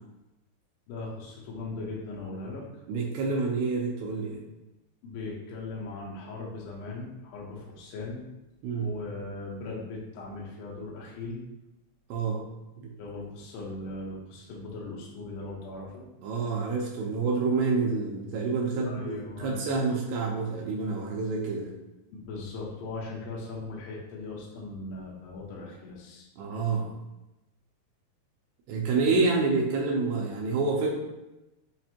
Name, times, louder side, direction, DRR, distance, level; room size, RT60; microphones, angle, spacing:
voice 1, 0.9-2.6 5.0-8.3 8.8-11.4 13.0-16.1 18.8-19.6 22.1-26.3, left 3 dB, 80° left, -4 dB, 2.8 m, -39 dB
voice 2, 2.9-4.4 8.6-8.9 12.1-12.5 12.8-12.9 16.2-21.7 26.4-26.9 28.7-30.9, right 4 dB, 80° right, -2 dB, 2.5 m, -28 dB
7.3 x 2.5 x 2.8 m, 0.97 s
omnidirectional pair, 5.0 m